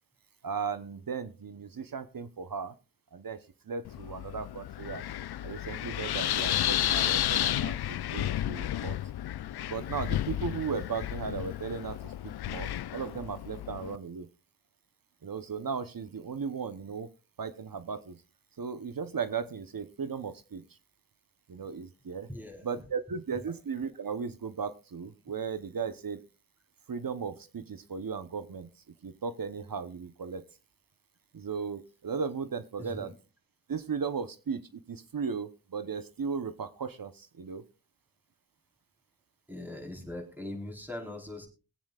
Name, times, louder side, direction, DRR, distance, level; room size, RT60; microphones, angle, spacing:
voice 1, 0.4-2.7 3.1-3.4 3.6-5.1 5.4-9.0 9.7-14.3 15.2-17.1 17.4-18.2 18.6-20.6 21.5-22.3 22.6-26.2 26.9-28.7 29.0-30.4 31.3-33.1 33.7-37.6, right 5 dB, 55° right, 12 dB, 1.0 m, -36 dB
Wind, 3.8-14.0, left 12 dB, 70° left, 0.5 m, -32 dB
voice 2, 22.3-22.7 32.8-33.1 39.5-41.5, left 1 dB, 5° right, 2 dB, 4.3 m, -41 dB
21.5 x 8.6 x 2.4 m, 0.31 s
cardioid pair, 50°, 39 cm